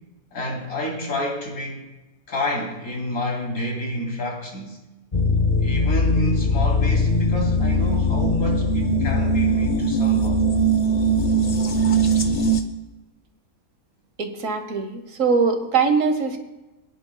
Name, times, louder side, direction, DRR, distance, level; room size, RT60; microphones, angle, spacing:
voice 1, 0.3-1.9 2.3-4.8 5.6-10.4, left 1 dB, 80° left, -1 dB, 3.5 m, -29 dB
sound 1, 5.1-12.6, right 1 dB, 35° left, 0.7 m, -20 dB
voice 2, 14.2-16.4, right 5 dB, 65° right, 7 dB, 1.6 m, -22 dB
26.5 x 10.5 x 2.3 m, 1.1 s
omnidirectional pair, 1.5 m